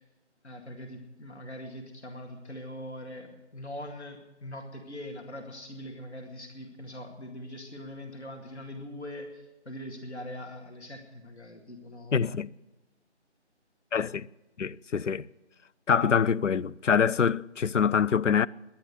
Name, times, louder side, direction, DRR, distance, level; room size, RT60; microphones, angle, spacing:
voice 1, 0.4-12.2, left 1 dB, 65° left, 2.1 m, -42 dB
voice 2, 12.1-12.5 13.9-14.3 14.6-15.3 15.9-18.5, left 7 dB, 90° left, 0.5 m, -25 dB
10.5 x 10.5 x 9.6 m
figure-of-eight pair, 170°, 36 cm